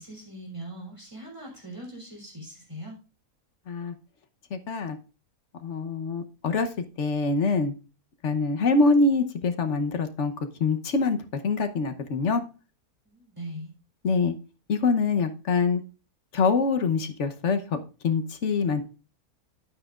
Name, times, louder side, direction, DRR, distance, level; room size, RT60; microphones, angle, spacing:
voice 1, 0.0-2.9 13.0-13.7, right 1 dB, 20° right, -2 dB, 3.3 m, -41 dB
voice 2, 4.5-5.0 5.6-6.7 7.0-7.7 8.2-10.3 10.6-11.2 11.4-12.4 14.0-14.3 14.7-15.8 16.3-18.8, left 4 dB, 50° left, 8 dB, 1.2 m, -24 dB
10.0 x 9.0 x 2.4 m, 0.32 s
omnidirectional pair, 1.7 m